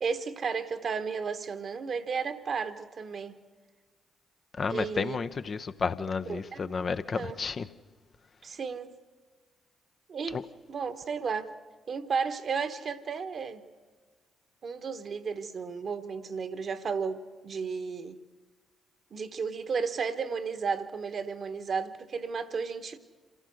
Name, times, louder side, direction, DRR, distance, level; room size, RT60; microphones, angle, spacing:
voice 1, 0.0-3.4 4.7-5.2 6.3-6.9 7.2-7.4 8.4-8.9 10.1-10.4 10.7-11.5 11.9-13.6 14.6-18.2 19.1-23.0, right 5 dB, 50° right, 1.3 m, -33 dB
voice 2, 4.6-7.7 10.3-10.4, left 5 dB, 45° left, 0.7 m, -31 dB
27.5 x 15.5 x 6.4 m
hypercardioid pair, 45°, 0 cm